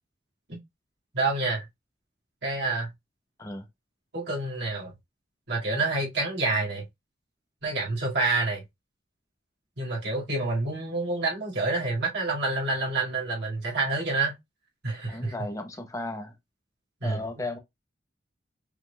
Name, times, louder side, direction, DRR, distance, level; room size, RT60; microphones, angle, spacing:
voice 1, 1.1-1.6 2.4-2.9 4.1-4.9 5.5-6.9 7.6-8.6 9.8-14.3 14.8-15.3 17.0-17.2, right 3 dB, 65° right, 2.0 m, -28 dB
voice 2, 15.1-16.3 17.0-17.6, left 2 dB, 20° left, 0.8 m, -35 dB
5.8 x 3.7 x 2.3 m
head